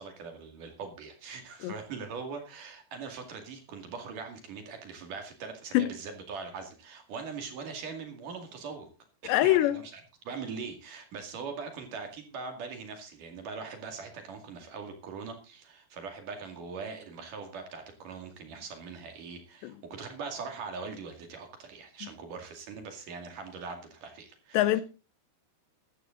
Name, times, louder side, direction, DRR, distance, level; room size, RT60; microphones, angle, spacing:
voice 1, 0.0-8.9 9.2-24.8, right 5 dB, 55° right, 3.5 m, -41 dB
voice 2, 9.3-9.8 24.5-24.8, left 15 dB, 85° left, 3.1 m, -23 dB
14.5 x 12.0 x 3.9 m
omnidirectional pair, 4.9 m